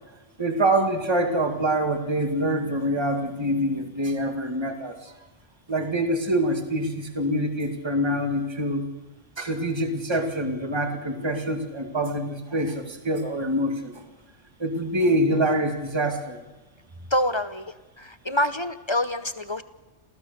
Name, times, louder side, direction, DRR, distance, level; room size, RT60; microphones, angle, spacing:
voice 1, 0.4-5.1 5.7-8.8 9.4-13.9 14.6-16.4, right 1 dB, 20° right, 5 dB, 2.0 m, -25 dB
voice 2, 17.1-17.6 18.0-19.6, left 1 dB, 25° left, 12 dB, 0.7 m, -26 dB
28.0 x 16.0 x 6.7 m, 1.2 s
omnidirectional pair, 1.3 m